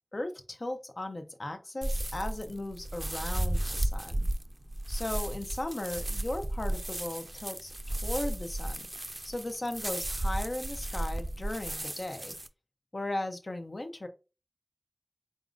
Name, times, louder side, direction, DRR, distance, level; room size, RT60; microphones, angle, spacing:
voice 1, 0.1-4.3 4.9-8.9 9.2-12.4 12.9-14.1, left 1 dB, 80° left, 6 dB, 0.6 m, -37 dB
sound 1, 1.8-12.5, right 1 dB, 40° right, 0.3 m, -34 dB
4.0 x 3.6 x 2.5 m, 0.31 s
wide cardioid pair, 40°, 0 cm